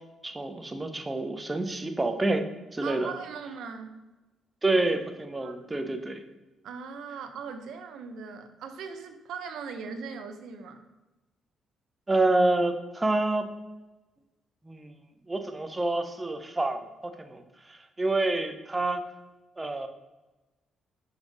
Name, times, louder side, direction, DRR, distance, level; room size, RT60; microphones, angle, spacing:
voice 1, 0.2-2.5 2.7-3.1 4.6-6.2 12.1-13.5 14.7-14.9 15.3-17.4 17.7-19.0 19.6-19.9, right 2 dB, 15° right, 6 dB, 0.7 m, -28 dB
voice 2, 2.8-4.0 5.4-5.9 6.6-10.9, right 5 dB, 75° right, 7 dB, 0.7 m, -40 dB
5.9 x 5.4 x 4.0 m, 1.1 s
cardioid pair, 90°, 0 cm